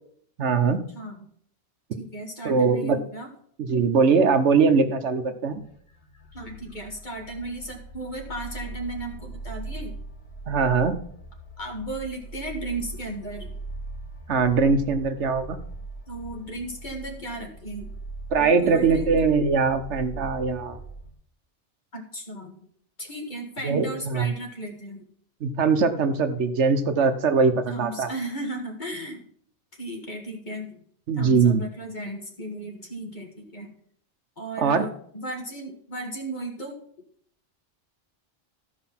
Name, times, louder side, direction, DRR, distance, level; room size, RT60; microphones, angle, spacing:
voice 1, 0.4-0.8 2.4-3.0 3.6-5.6 10.5-11.0 14.3-15.6 18.3-20.8 23.6-24.3 25.4-28.1 31.1-31.6 34.6-34.9, right 5 dB, 75° right, 8 dB, 1.2 m, -21 dB
voice 2, 0.9-1.3 2.0-3.3 6.3-9.9 11.6-13.5 16.1-17.9 18.4-19.1 21.9-22.6 23.0-25.1 27.7-29.3 29.7-30.8 31.2-33.7 34.4-36.8, right 1 dB, 40° left, 1 dB, 2.0 m, -35 dB
sound 1, 5.5-21.1, right 2 dB, 65° left, 1.9 m, -40 dB
13.5 x 5.0 x 5.8 m, 0.63 s
omnidirectional pair, 1.2 m